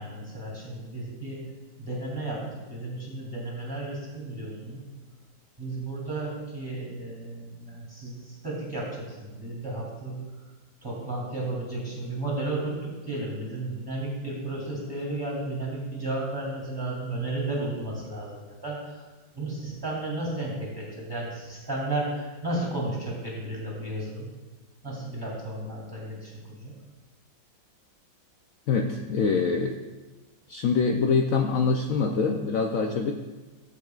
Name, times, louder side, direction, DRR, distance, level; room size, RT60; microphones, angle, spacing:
voice 1, 0.0-1.5 1.8-4.9 5.6-10.2 10.8-19.0 19.3-24.3 24.8-26.7, right 2 dB, 10° right, -5 dB, 2.6 m, -33 dB
voice 2, 28.7-29.8 30.5-33.1, left 5 dB, 90° left, 4 dB, 0.7 m, -24 dB
13.5 x 7.9 x 2.4 m, 1.2 s
omnidirectional pair, 2.1 m